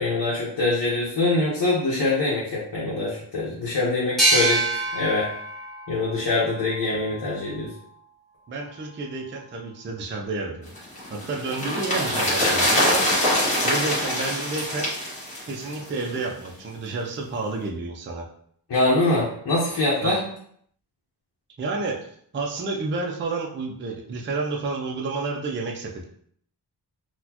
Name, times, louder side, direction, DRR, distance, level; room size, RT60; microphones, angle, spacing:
voice 1, 0.0-5.3 5.9-7.7 18.7-20.2, left 2 dB, 65° left, -6 dB, 0.9 m, -24 dB
sound 1, 4.2-7.6, right 2 dB, ahead, 1.0 m, -26 dB
voice 2, 8.5-10.7 11.1-13.0 13.6-14.9 15.5-18.3 20.0-20.2 21.6-22.1 22.3-26.0, right 3 dB, 30° right, 0 dB, 0.4 m, -30 dB
sound 2, 10.8-16.2 16.4-16.5, left 1 dB, 15° left, 1.4 m, -24 dB
4.1 x 2.2 x 2.8 m, 0.64 s
wide cardioid pair, 150°, 42 cm